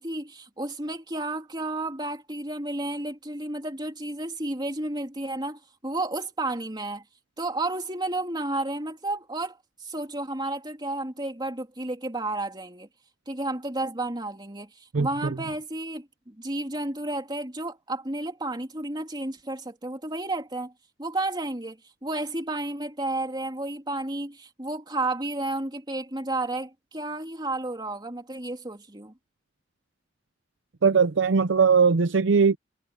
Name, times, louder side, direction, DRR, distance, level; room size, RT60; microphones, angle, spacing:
voice 1, 0.0-7.0 7.4-12.9 13.3-20.7 21.0-29.1, right 2 dB, 25° right, 3.1 m, -32 dB
voice 2, 14.9-15.4 30.8-32.6, right 5 dB, 80° right, 0.6 m, -20 dB
head